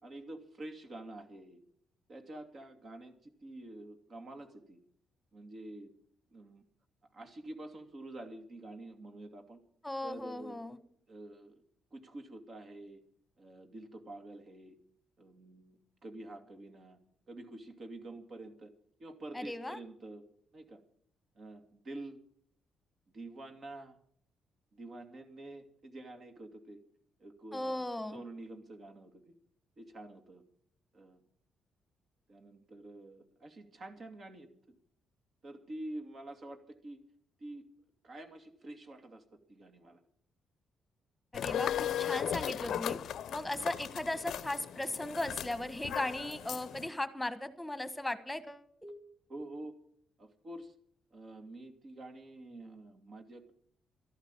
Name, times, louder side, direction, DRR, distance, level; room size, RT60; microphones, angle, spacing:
voice 1, 0.0-1.6 2.1-4.8 5.3-5.9 6.3-6.6 7.1-9.6 10.0-10.6 11.1-11.6 11.9-13.0 13.4-14.8 15.2-17.0 17.3-18.7 19.0-20.2 20.5-20.8 21.4-22.2 23.1-24.0 24.7-26.8 27.2-29.3 29.8-30.4 30.9-31.2 32.3-34.7 35.4-37.0 37.4-37.7 38.0-39.2 39.5-40.0 49.3-49.8 50.2-50.7 51.1-53.5, right 2 dB, 45° right, 6 dB, 2.5 m, -48 dB
voice 2, 9.8-10.8 19.3-19.8 27.5-28.2 41.3-43.0 43.3-49.1, left 1 dB, 10° left, 13 dB, 1.4 m, -37 dB
sound 1, 41.3-46.9, left 10 dB, 70° left, 0.7 m, -37 dB
13.0 x 11.5 x 8.3 m, 0.64 s
cardioid pair, 90°, 0 cm